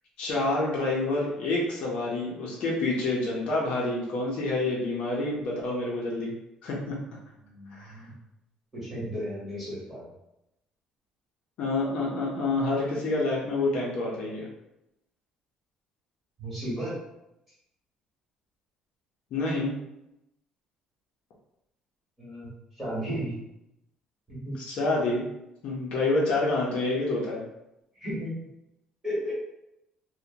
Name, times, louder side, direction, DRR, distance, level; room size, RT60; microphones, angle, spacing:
voice 1, 0.2-6.3 6.6-7.0 7.7-7.9 11.6-14.5 19.3-19.7 24.7-25.3 25.6-27.4, left 2 dB, 55° left, -4 dB, 0.6 m, -28 dB
voice 2, 7.4-8.1 8.7-10.1 16.4-16.9 22.2-23.3 24.3-24.6 27.9-28.3 29.0-29.3, equal, 10° right, -9 dB, 1.2 m, -34 dB
2.7 x 2.1 x 2.7 m, 0.85 s
cardioid pair, 175°, 2 cm